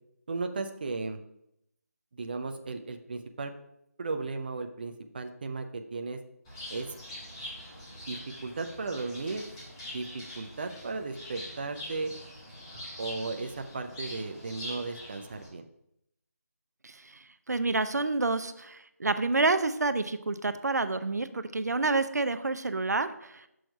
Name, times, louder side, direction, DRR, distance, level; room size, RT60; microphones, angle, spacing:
voice 1, 0.3-1.2 2.2-3.5 4.0-6.2 6.7-7.0 8.1-9.4 9.9-10.1 10.4-12.1 13.0-15.7, right 3 dB, 35° right, 6 dB, 0.5 m, -35 dB
Bird, 6.4-15.5, left 1 dB, 15° left, 2.1 m, -44 dB
voice 2, 16.8-23.5, right 3 dB, 80° right, 11 dB, 0.6 m, -29 dB
6.3 x 4.5 x 5.2 m, 0.79 s
figure-of-eight pair, 165°, 9 cm